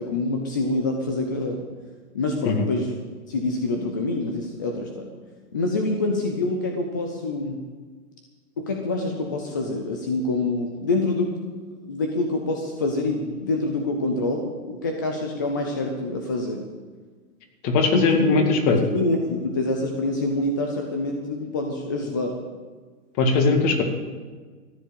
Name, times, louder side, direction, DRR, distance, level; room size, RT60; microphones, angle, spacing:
voice 1, 0.0-1.7 2.1-2.9 3.3-5.1 5.5-7.6 8.6-11.3 11.8-16.7 17.9-18.5 18.9-22.4, left 2 dB, 15° left, 2 dB, 0.4 m, -26 dB
voice 2, 17.6-19.0 23.2-23.8, left 3 dB, 30° left, 4 dB, 2.2 m, -20 dB
14.0 x 10.5 x 7.4 m, 1.4 s
hypercardioid pair, 145°, 46 cm